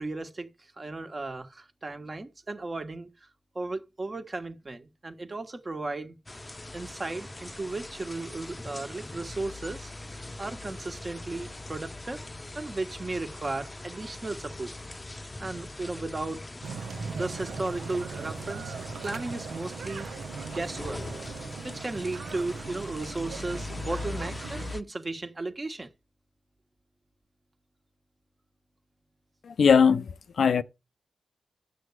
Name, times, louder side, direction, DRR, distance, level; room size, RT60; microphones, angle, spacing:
voice 1, 0.0-3.3 3.5-6.2 6.4-9.9 10.4-12.2 12.5-14.7 15.4-16.5 17.1-18.7 19.0-20.1 20.4-21.0 21.6-25.9, right 2 dB, 40° right, 1.3 m, -35 dB
sound 1, 6.3-24.8, left 2 dB, 25° left, 0.6 m, -41 dB
sound 2, 16.6-24.7, right 6 dB, 85° right, 0.6 m, -40 dB
voice 2, 29.4-30.6, left 6 dB, 80° left, 0.5 m, -21 dB
8.3 x 6.2 x 4.7 m
cardioid pair, 55°, 0 cm